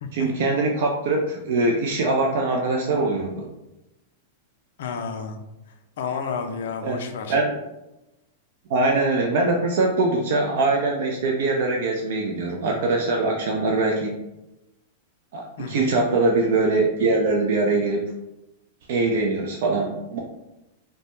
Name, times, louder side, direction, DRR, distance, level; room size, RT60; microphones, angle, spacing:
voice 1, 0.1-3.5 6.8-7.0 7.3-7.6 8.7-14.2 15.3-18.1 18.9-20.2, right 3 dB, 65° right, 0 dB, 0.3 m, -22 dB
voice 2, 4.8-5.4 6.0-7.4 15.6-15.9, left 5 dB, 70° left, 5 dB, 0.3 m, -31 dB
2.2 x 2.0 x 2.9 m, 0.95 s
hypercardioid pair, 105°, 0 cm